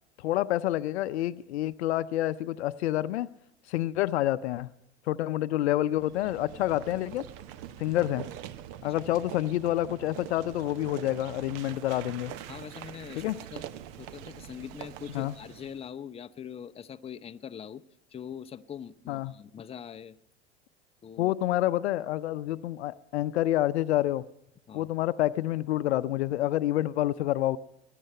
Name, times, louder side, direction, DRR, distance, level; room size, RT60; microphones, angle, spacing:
voice 1, 0.2-3.3 3.7-4.7 5.1-7.2 7.8-8.3 8.8-12.3 13.2-13.4 15.1-15.3 19.1-19.3 21.2-24.3 24.7-27.6, left 14 dB, 70° left, 0.6 m, -28 dB
sound 1, 5.9-15.9, right 11 dB, 55° right, 0.9 m, -44 dB
voice 2, 12.5-13.6 14.0-17.8 18.1-20.2 21.0-21.3 24.7-24.9, left 8 dB, 15° left, 0.6 m, -43 dB
20.5 x 10.5 x 5.5 m
hypercardioid pair, 85°, 34 cm